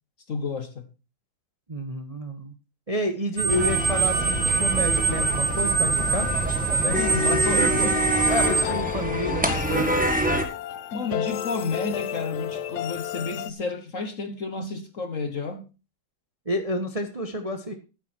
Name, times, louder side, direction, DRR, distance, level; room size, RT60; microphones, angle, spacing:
voice 1, 0.3-0.9 5.1-5.2 6.9-8.0 9.1-9.3 10.9-15.7, left 4 dB, 45° left, 1.3 m, -31 dB
voice 2, 1.7-2.5 2.9-6.3 6.7-7.0 7.2-8.0 8.3-9.9 16.5-17.7, equal, 25° right, 0.9 m, -29 dB
sound 1, 3.4-8.6, right 6 dB, 50° right, 1.7 m, -24 dB
sound 2, 3.5-10.4, equal, 5° right, 1.3 m, -26 dB
sound 3, 8.2-13.5, left 11 dB, 65° left, 1.1 m, -32 dB
12.0 x 9.9 x 4.4 m
omnidirectional pair, 2.2 m